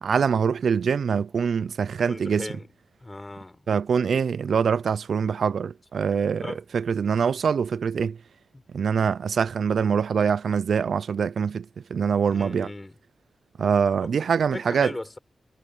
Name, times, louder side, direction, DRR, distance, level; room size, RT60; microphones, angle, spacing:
voice 1, 0.0-2.5 3.7-6.4 6.7-8.2 8.7-11.7 11.9-12.7 13.6-14.9, right 6 dB, 70° right, 0.4 m, -24 dB
voice 2, 2.0-2.7 3.0-3.6 6.4-6.6 8.5-8.6 12.3-12.9 14.0-14.1 14.5-15.2, left 2 dB, 20° left, 5.2 m, -37 dB
wide cardioid pair, 115°, 0 cm